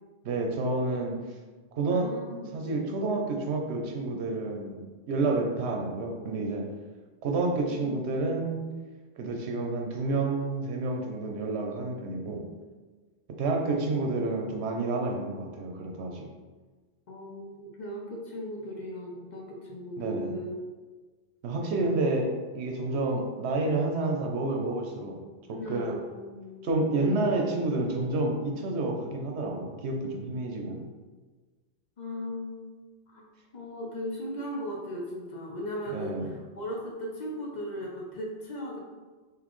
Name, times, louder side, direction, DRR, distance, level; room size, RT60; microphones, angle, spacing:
voice 1, 0.2-1.2 1.8-2.1 2.5-4.8 5.1-6.7 7.2-8.7 9.2-12.4 13.4-16.3 20.0-20.3 21.4-25.2 25.5-26.0 26.6-30.8 35.9-36.3, right 2 dB, 80° right, 1 dB, 0.9 m, -29 dB
voice 2, 1.9-2.9 7.7-8.0 12.1-12.6 17.1-20.5 21.6-22.0 25.5-27.2 32.0-32.7 33.1-38.8, equal, 50° left, -2 dB, 0.7 m, -38 dB
4.0 x 3.0 x 3.0 m, 1.3 s
omnidirectional pair, 1.1 m